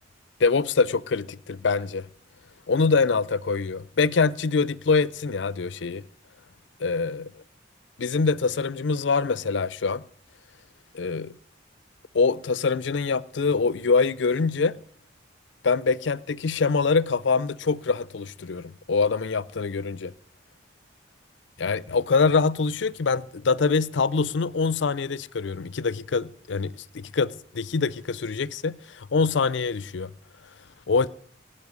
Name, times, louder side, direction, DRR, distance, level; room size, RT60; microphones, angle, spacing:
voice 1, 0.4-2.0 2.7-6.0 6.8-7.4 8.0-10.0 10.9-11.4 12.1-14.8 15.6-20.1 21.6-30.1 30.9-31.1, left 4 dB, 70° left, 0.5 m, -24 dB
17.5 x 7.7 x 9.5 m
head